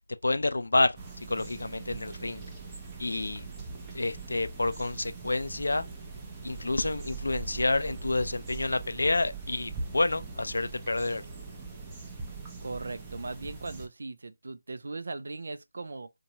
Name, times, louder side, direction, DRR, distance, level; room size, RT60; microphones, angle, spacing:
voice 1, 0.2-1.0 1.3-2.5 3.0-3.5 3.9-5.8 6.4-11.2, left 2 dB, 70° left, 0.3 m, -29 dB
sound 1, 1.0-13.9, right 4 dB, 15° right, 0.6 m, -41 dB
voice 2, 12.6-16.1, right 3 dB, 60° right, 0.4 m, -38 dB
2.7 x 2.2 x 2.8 m
figure-of-eight pair, 160°, 0 cm